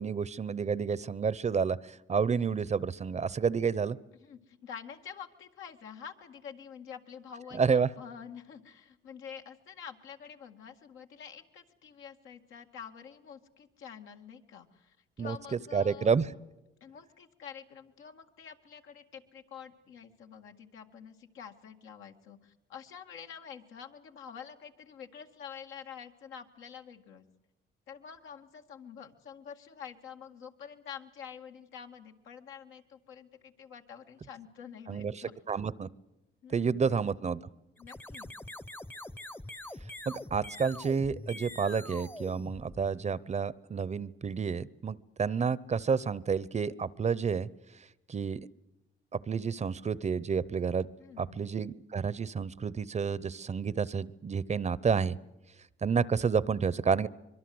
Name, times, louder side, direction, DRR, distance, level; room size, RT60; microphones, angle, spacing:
voice 1, 0.0-4.0 7.6-7.9 15.2-16.3 34.9-35.9 36.5-37.4 40.1-47.5 48.1-48.4 49.1-50.9 51.2-55.2 55.8-57.1, right 6 dB, 35° right, 20 dB, 0.8 m, -30 dB
voice 2, 4.2-16.1 16.8-27.2 27.9-35.3 36.4-37.0 37.8-38.3 51.0-51.4, left 7 dB, 80° left, 4 dB, 2.1 m, -47 dB
sound 1, 37.8-43.2, left 1 dB, 10° left, 0.8 m, -44 dB
24.5 x 22.5 x 7.9 m, 0.95 s
cardioid pair, 90°, 20 cm